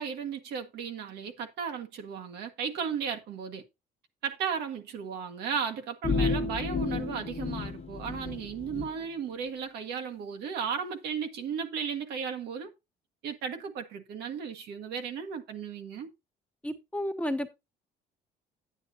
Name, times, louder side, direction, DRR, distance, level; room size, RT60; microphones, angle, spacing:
voice 1, 0.0-3.6 4.2-12.7 13.2-16.1, right 7 dB, 75° right, 1.5 m, -35 dB
sound 1, 6.0-8.9, left 4 dB, 40° left, 1.3 m, -31 dB
voice 2, 16.6-17.5, equal, 10° left, 1.0 m, -32 dB
9.7 x 9.1 x 2.8 m
cardioid pair, 110°, 17 cm